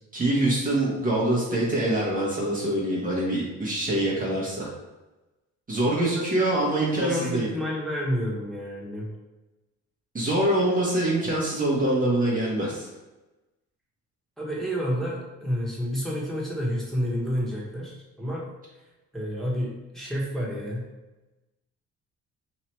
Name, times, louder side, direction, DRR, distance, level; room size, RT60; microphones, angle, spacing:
voice 1, 0.1-4.7 5.7-7.5 10.1-12.9, right 1 dB, 25° right, -5 dB, 1.1 m, -24 dB
voice 2, 5.9-6.5 7.0-9.1 14.4-18.5 19.1-20.9, equal, ahead, -6 dB, 1.4 m, -30 dB
3.1 x 2.8 x 4.4 m, 1.1 s
cardioid pair, 90°, 30 cm